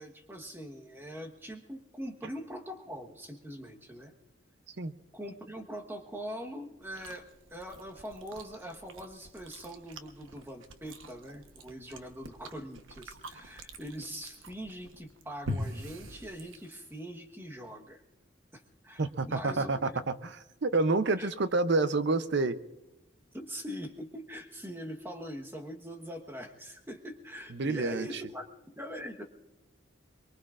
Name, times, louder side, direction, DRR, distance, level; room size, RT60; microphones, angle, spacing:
voice 1, 0.0-4.1 5.1-18.0 18.5-20.1 21.2-21.3 23.3-28.5 28.8-29.2, equal, 10° right, 4 dB, 1.3 m, -42 dB
Chewing mastication, 6.8-17.0, equal, 80° right, 1.1 m, -44 dB
voice 2, 19.0-20.3 20.6-22.6 27.5-28.2, right 3 dB, 60° right, 13 dB, 0.7 m, -28 dB
23.5 x 22.5 x 2.5 m, 1.0 s
head